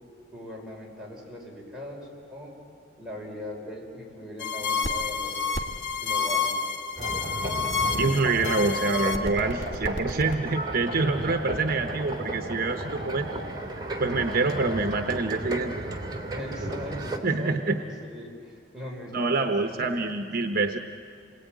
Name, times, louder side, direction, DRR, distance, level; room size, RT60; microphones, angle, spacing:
voice 1, 0.3-2.5 3.0-5.5 5.9-6.6 11.1-11.9 16.3-20.5, left 1 dB, 5° right, -3 dB, 5.6 m, -40 dB
sound 1, 4.4-10.3, left 5 dB, 85° left, 1.8 m, -29 dB
sound 2, 7.0-17.2, right 1 dB, 25° right, 2.2 m, -34 dB
voice 2, 7.9-13.4 14.0-15.7 17.2-17.8 19.1-20.8, right 3 dB, 50° right, 6 dB, 0.9 m, -26 dB
28.0 x 21.0 x 9.3 m, 2.4 s
head